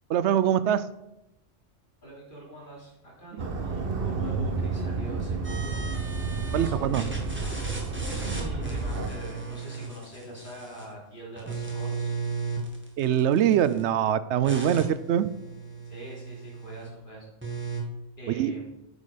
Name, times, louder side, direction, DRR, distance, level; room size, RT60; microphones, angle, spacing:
voice 1, 0.1-0.9 3.3-3.4 6.5-7.0 13.0-15.3 18.3-18.5, right 10 dB, 70° right, 15 dB, 0.8 m, -23 dB
voice 2, 2.0-7.2 7.8-12.2 15.9-17.3 18.2-18.8, right 1 dB, 40° left, -5 dB, 3.8 m, -44 dB
sound 1, 3.4-9.1, right 4 dB, 50° right, 1.1 m, -30 dB
sound 2, 5.4-6.7 6.9-10.9 11.3-13.8 14.4-16.9 17.4-17.8, right 4 dB, 10° right, 1.5 m, -36 dB
9.4 x 6.8 x 5.0 m, 0.89 s
omnidirectional pair, 1.3 m